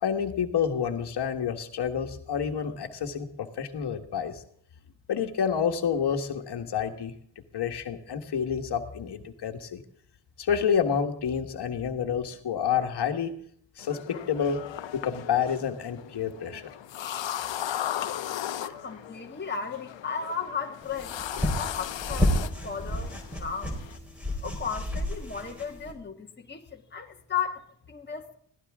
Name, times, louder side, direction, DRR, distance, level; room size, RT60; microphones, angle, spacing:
voice 1, 0.0-4.4 5.1-7.1 7.5-9.8 10.4-13.3 13.8-14.7 14.9-16.7, left 7 dB, 65° left, 5 dB, 1.6 m, -29 dB
sound 1, 13.8-24.0, left 11 dB, 80° left, 0.9 m, -37 dB
voice 2, 18.6-23.8 24.4-28.4, left 6 dB, 25° left, 2 dB, 1.7 m, -35 dB
sound 2, 20.8-25.9, equal, 5° right, 4.3 m, -31 dB
23.0 x 16.5 x 3.7 m, 0.65 s
wide cardioid pair, 160°, 44 cm